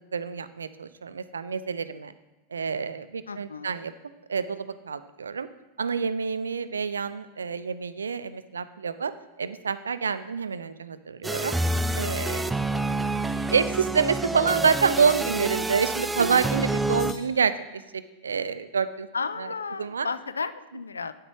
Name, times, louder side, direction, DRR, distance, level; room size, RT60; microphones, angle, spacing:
voice 1, 0.1-2.1 2.5-3.9 4.3-5.5 5.8-9.1 9.4-11.6 12.0-12.5 13.5-19.1 19.4-19.5 19.8-20.1, right 6 dB, 70° right, 14 dB, 0.4 m, -27 dB
voice 2, 3.3-3.7 19.1-21.1, left 5 dB, 75° left, 14 dB, 0.5 m, -33 dB
sound 1, 11.2-17.1, right 2 dB, 10° right, 0.4 m, -28 dB
sound 2, 15.1-15.4 17.0-18.1, left 4 dB, 35° left, 1.8 m, -47 dB
8.7 x 8.0 x 4.7 m, 1.1 s
figure-of-eight pair, 90°, 0 cm